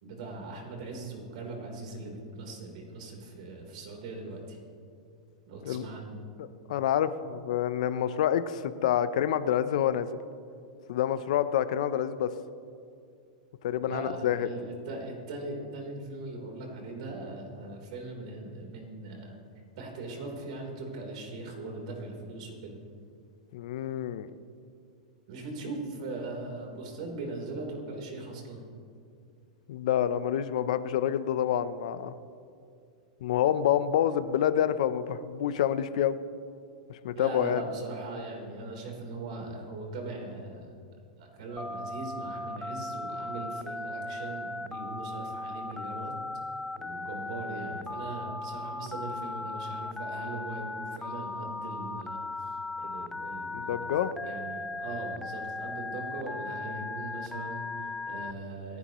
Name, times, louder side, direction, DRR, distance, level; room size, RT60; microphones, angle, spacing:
voice 1, 0.0-4.6 5.5-6.2 13.8-19.4 19.8-22.8 25.3-28.6 37.1-40.7 41.2-46.1 46.8-58.8, right 2 dB, 65° right, 1 dB, 3.8 m, -40 dB
voice 2, 6.4-10.1 10.9-12.3 13.6-14.5 23.5-24.3 29.7-32.1 33.2-36.2 36.9-37.6 53.5-54.1, left 10 dB, 70° left, 13 dB, 0.7 m, -27 dB
Telephone, 41.6-58.3, left 2 dB, 10° left, 0.4 m, -37 dB
27.0 x 11.0 x 3.1 m, 2.5 s
supercardioid pair, 135°, 4 cm